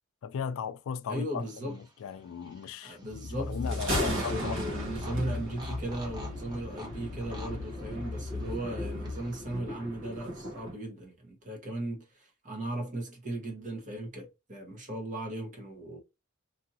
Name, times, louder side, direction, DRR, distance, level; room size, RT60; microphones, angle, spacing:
voice 1, 0.2-4.9, left 7 dB, 65° left, 0.3 m, -37 dB
voice 2, 1.1-1.7 2.8-16.0, right 1 dB, 35° right, 1.0 m, -37 dB
sound 1, 1.4-9.6, right 1 dB, 20° right, 0.8 m, -50 dB
sound 2, 3.0-9.6, left 2 dB, 20° left, 1.0 m, -38 dB
Thunder, 3.5-10.8, equal, 60° right, 1.2 m, -37 dB
2.7 x 2.7 x 2.7 m
head